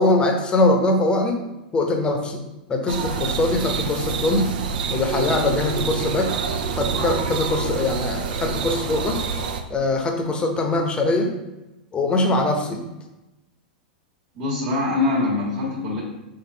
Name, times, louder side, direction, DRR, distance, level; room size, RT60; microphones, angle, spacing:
voice 1, 0.0-1.4 1.7-2.4 2.7-4.5 4.9-6.4 6.7-9.2 9.7-11.3 11.9-12.8, left 2 dB, 20° left, 3 dB, 0.8 m, -22 dB
sound 1, 2.9-9.6, right 5 dB, 70° right, 0.5 m, -27 dB
voice 2, 14.3-16.0, left 3 dB, 50° right, -4 dB, 1.5 m, -23 dB
4.3 x 2.6 x 4.3 m, 0.99 s
hypercardioid pair, 105°, 5 cm